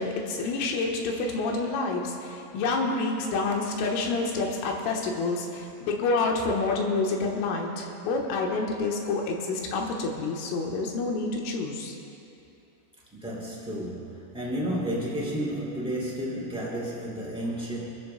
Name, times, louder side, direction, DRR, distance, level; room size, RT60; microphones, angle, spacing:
voice 1, 0.0-12.0, left 3 dB, 90° left, 0 dB, 3.7 m, -28 dB
voice 2, 13.1-17.9, right 1 dB, 5° right, -7 dB, 0.8 m, -32 dB
25.0 x 14.0 x 2.3 m, 2.8 s
omnidirectional pair, 5.7 m